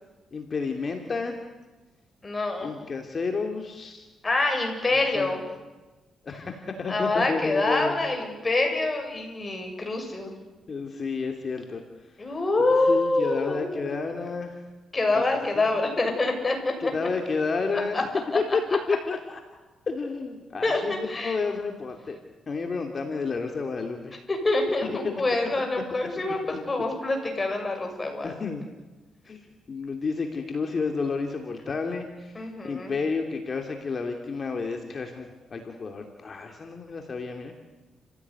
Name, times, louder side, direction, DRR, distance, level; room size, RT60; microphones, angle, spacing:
voice 1, 0.3-1.3 2.6-4.0 5.1-5.3 6.2-8.0 10.7-11.8 12.9-14.6 15.1-15.2 15.5-15.9 16.8-18.0 18.3-18.6 18.9-19.4 19.9-22.2 22.5-24.2 24.8-25.1 28.2-28.7 29.3-37.5, left 4 dB, 40° left, 3 dB, 2.9 m, -31 dB
voice 2, 2.2-2.7 4.2-5.4 6.9-10.3 12.2-14.0 14.9-16.9 17.9-18.0 20.6-21.4 24.3-28.3 32.3-32.9, left 2 dB, 25° left, 3 dB, 7.2 m, -26 dB
30.0 x 16.5 x 9.7 m, 1.2 s
cardioid pair, 100°, 0 cm